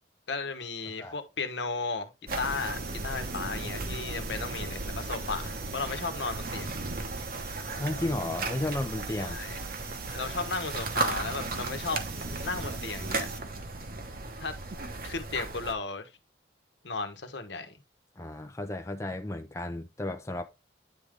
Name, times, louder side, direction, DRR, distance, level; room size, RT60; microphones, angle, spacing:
voice 1, 0.3-6.8 9.2-9.6 10.1-12.0 12.4-13.3 14.4-14.5 15.0-16.1 16.8-17.8, left 4 dB, 70° left, 1.1 m, -35 dB
sound 1, 2.3-15.7, right 3 dB, 50° right, 1.0 m, -35 dB
voice 2, 7.8-9.4 18.2-20.4, left 1 dB, 15° left, 0.5 m, -33 dB
9.7 x 3.7 x 3.4 m
head